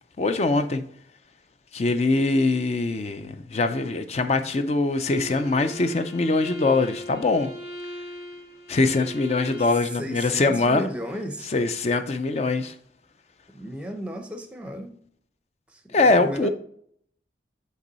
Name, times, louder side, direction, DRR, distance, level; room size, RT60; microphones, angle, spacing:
voice 1, 0.2-0.8 1.7-7.5 8.7-10.9 11.5-12.7 15.9-16.5, left 3 dB, 35° left, 0.4 m, -23 dB
Bowed string instrument, 5.0-9.9, equal, 75° left, 1.9 m, -39 dB
voice 2, 10.0-11.5 13.5-15.0 15.7-16.5, equal, 5° right, 0.6 m, -34 dB
8.1 x 3.1 x 4.0 m
head